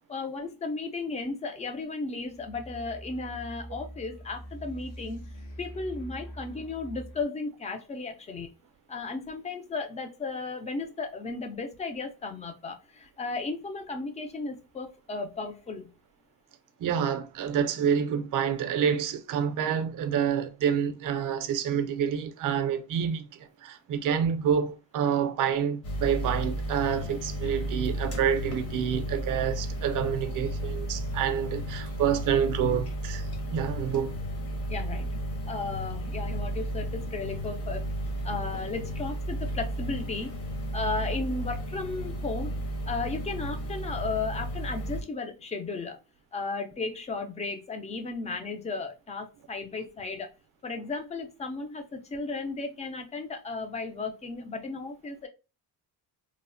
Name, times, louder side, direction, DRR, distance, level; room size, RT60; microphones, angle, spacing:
voice 1, 0.1-8.5 8.9-15.9 34.7-35.2 35.5-37.8 38.2-40.4 40.7-42.6 42.8-46.0 46.3-50.3 50.6-55.3, left 3 dB, 20° left, 0.3 m, -35 dB
sound 1, 2.3-7.2, equal, 70° left, 1.2 m, -43 dB
voice 2, 16.8-23.3 23.6-34.2, right 8 dB, 50° right, 0.5 m, -28 dB
sound 2, 25.8-45.0, right 1 dB, 40° left, 0.8 m, -33 dB
3.1 x 2.1 x 2.4 m
cardioid pair, 160°, 40 cm